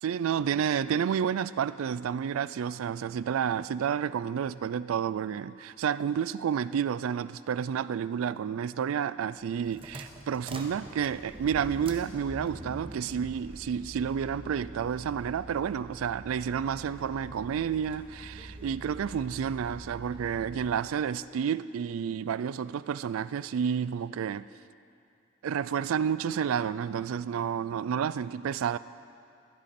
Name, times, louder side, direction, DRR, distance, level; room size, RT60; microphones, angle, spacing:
voice 1, 0.0-24.5 25.4-28.8, right 8 dB, 90° right, 0.3 m, -30 dB
sound 1, 9.4-20.9, right 1 dB, 25° right, 1.0 m, -45 dB
15.5 x 12.0 x 4.3 m
head